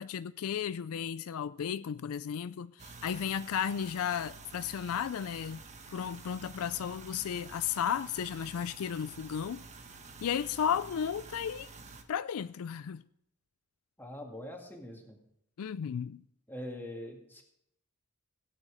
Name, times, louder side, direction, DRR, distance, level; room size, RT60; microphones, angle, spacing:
voice 1, 0.0-5.6 5.9-9.6 10.2-11.7 12.1-13.0 15.6-16.2, left 8 dB, 75° left, 0.4 m, -34 dB
sound 1, 2.8-12.0, right 4 dB, 30° right, 1.2 m, -50 dB
voice 2, 14.0-15.2 16.5-17.4, left 1 dB, 10° left, 1.9 m, -43 dB
16.5 x 9.1 x 5.0 m
head